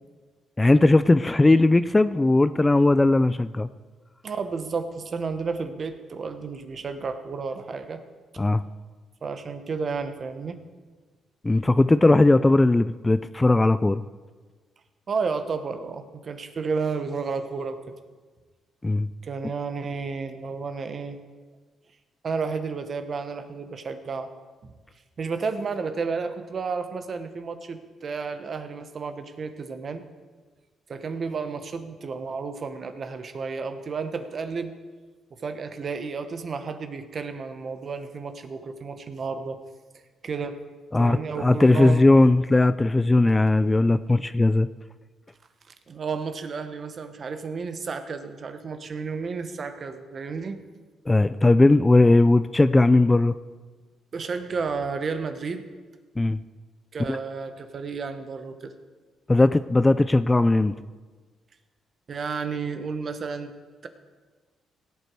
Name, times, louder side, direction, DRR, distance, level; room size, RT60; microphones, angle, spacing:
voice 1, 0.6-3.7 8.4-8.6 11.4-14.0 18.8-19.1 40.9-44.7 51.1-53.3 56.2-56.4 57.1-57.2 59.3-60.7, left 2 dB, 15° left, 14 dB, 0.3 m, -18 dB
voice 2, 4.2-8.0 9.2-10.6 15.1-17.8 19.2-21.2 22.2-24.3 24.6-24.7 25.2-30.0 30.9-34.7 35.3-39.6 40.2-40.6 41.0-42.0 45.7-50.6 54.1-55.6 56.9-58.7 62.1-63.5 63.8-63.9, right 5 dB, 45° right, 9 dB, 1.1 m, -32 dB
17.5 x 8.2 x 4.7 m, 1.4 s
cardioid pair, 90°, 0 cm